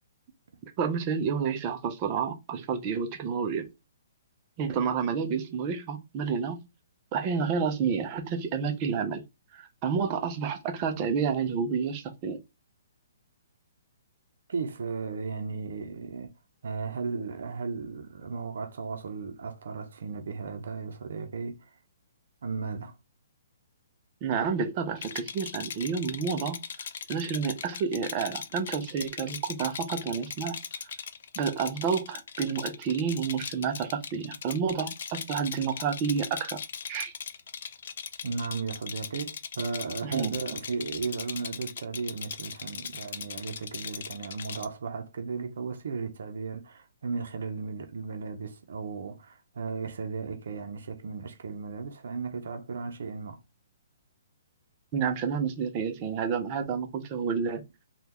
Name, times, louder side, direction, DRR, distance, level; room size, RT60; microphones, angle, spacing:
voice 1, 0.8-3.7 4.6-6.6 7.1-9.2 9.5-12.4 24.2-26.6 27.1-30.6 31.4-36.6 36.9-37.1 40.0-40.4 54.9-57.6, right 6 dB, 25° right, 0.6 m, -29 dB
voice 2, 14.5-16.3 16.6-21.7 22.4-23.0 38.2-53.4, right 4 dB, 70° right, 0.7 m, -35 dB
Rattle, 25.0-44.7, left 7 dB, 60° left, 0.4 m, -39 dB
3.5 x 2.3 x 2.9 m
hypercardioid pair, 160°, 0 cm